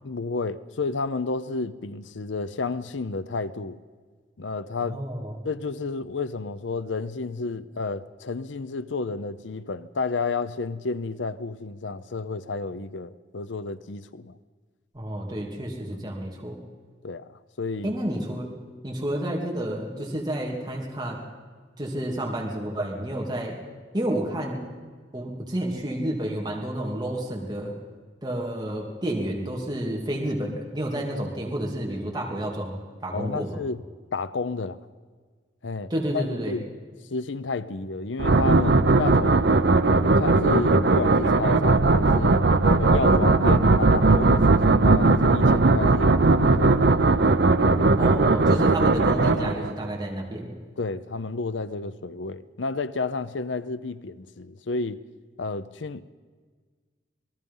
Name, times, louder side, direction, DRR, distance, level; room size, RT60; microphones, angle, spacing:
voice 1, 0.0-3.8 4.4-5.0 5.4-14.4 15.9-16.1 17.0-17.3 17.6-17.9 33.1-33.8 34.1-34.8 35.6-36.7 37.1-39.4 40.2-42.5 42.8-46.8 50.8-55.0 55.4-56.0, left 3 dB, 75° left, 15 dB, 0.7 m, -31 dB
voice 2, 4.8-5.4 14.9-16.6 17.8-18.5 18.8-21.2 21.8-23.6 23.9-24.6 25.1-27.7 28.2-33.6 35.9-36.6 48.0-50.5, right 1 dB, 20° right, -2 dB, 2.7 m, -30 dB
sound 1, 38.2-49.9, right 3 dB, 65° right, 0.8 m, -19 dB
27.0 x 19.5 x 5.6 m, 1.5 s
head